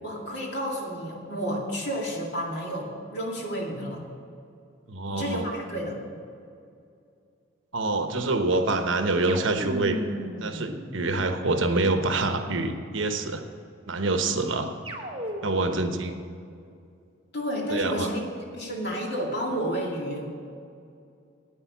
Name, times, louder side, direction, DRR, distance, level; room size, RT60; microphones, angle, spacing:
voice 1, 0.0-4.0 5.1-6.0 17.3-20.3, equal, 55° left, -1 dB, 2.3 m, -31 dB
voice 2, 4.9-5.5 7.7-13.4 13.9-14.7 15.4-16.2 17.7-18.1, right 2 dB, 70° right, 6 dB, 1.0 m, -26 dB
sound 1, 9.3-11.7 14.8-15.9, equal, 25° right, 1.1 m, -36 dB
10.5 x 9.0 x 7.2 m, 2.5 s
head